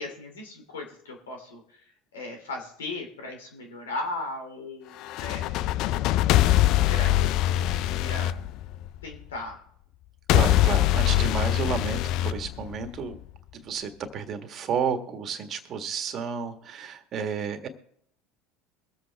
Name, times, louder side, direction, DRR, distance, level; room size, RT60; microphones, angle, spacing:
voice 1, 0.0-1.8 2.1-6.0 6.9-8.4 9.0-9.6, left 2 dB, 90° left, 3 dB, 2.7 m, -37 dB
sound 1, 5.0-9.1 10.3-13.1, left 14 dB, 60° left, 0.4 m, -23 dB
voice 2, 10.3-13.2 13.5-17.7, right 6 dB, 45° right, 7 dB, 1.7 m, -31 dB
22.5 x 7.9 x 3.5 m, 0.68 s
hypercardioid pair, 80°, 0 cm